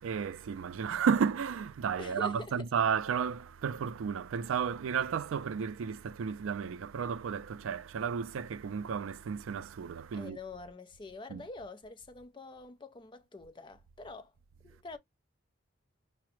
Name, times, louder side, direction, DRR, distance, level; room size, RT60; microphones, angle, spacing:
voice 1, 0.0-10.4 11.3-11.4, right 6 dB, 85° right, 0.4 m, -33 dB
voice 2, 2.0-2.7 10.1-14.3 14.6-15.0, left 3 dB, 25° left, 0.4 m, -46 dB
4.8 x 2.0 x 3.0 m
head